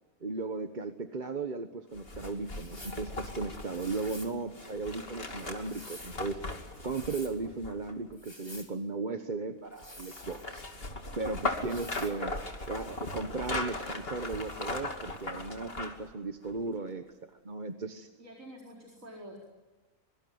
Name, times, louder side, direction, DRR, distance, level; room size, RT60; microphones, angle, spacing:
voice 1, 0.2-6.4 6.8-10.6 11.2-12.4 12.7-17.0 17.4-18.1, right 3 dB, 35° right, 7 dB, 1.3 m, -36 dB
sound 1, 1.9-8.1 9.8-16.1 16.5-16.6, left 2 dB, 40° left, 2.9 m, -38 dB
sound 2, 2.5-3.1 3.7-4.4 5.3-6.2 6.7-7.4 8.1-8.7 9.7-10.7 11.6-12.2, left 1 dB, 15° left, 3.6 m, -49 dB
voice 2, 11.4-11.9 18.2-19.4, right 1 dB, 60° right, 0 dB, 5.0 m, -48 dB
24.5 x 24.0 x 9.5 m, 1.2 s
omnidirectional pair, 1.5 m